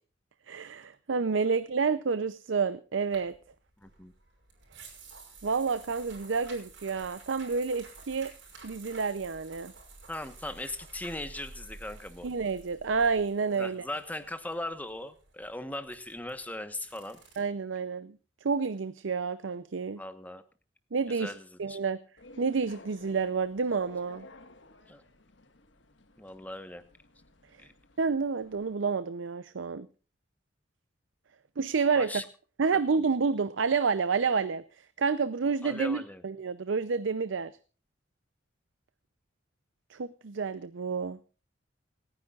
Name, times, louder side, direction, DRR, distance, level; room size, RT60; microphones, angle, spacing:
voice 1, 0.5-3.4 5.4-8.3 8.6-9.7 12.2-13.8 17.4-18.1 18.4-20.0 20.9-21.3 21.6-22.0 22.4-24.3 28.0-29.9 31.6-32.1 32.6-34.6 35.0-37.5 39.9-41.2, right 5 dB, 85° right, 14 dB, 0.6 m, -29 dB
sound 1, 3.1-17.4, right 3 dB, 65° right, 5.8 m, -51 dB
voice 2, 3.8-4.1 10.1-12.3 13.6-17.2 20.0-20.4 21.1-21.8 24.9-25.0 26.2-26.8 27.6-27.7 32.0-32.2 32.7-32.8 35.6-36.2, left 1 dB, 10° left, 9 dB, 1.1 m, -39 dB
sound 2, 22.2-28.8, left 2 dB, 75° left, 1.5 m, -54 dB
28.0 x 9.9 x 2.4 m, 0.36 s
head